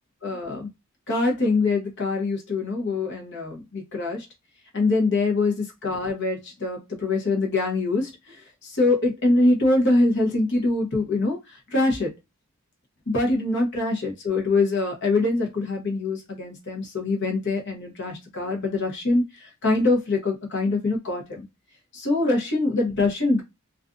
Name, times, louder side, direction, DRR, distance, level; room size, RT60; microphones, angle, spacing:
voice 1, 0.2-0.7 1.1-4.3 4.7-12.1 13.1-21.4 21.9-23.4, left 2 dB, 55° left, 0.9 m, -24 dB
2.5 x 2.4 x 2.4 m
head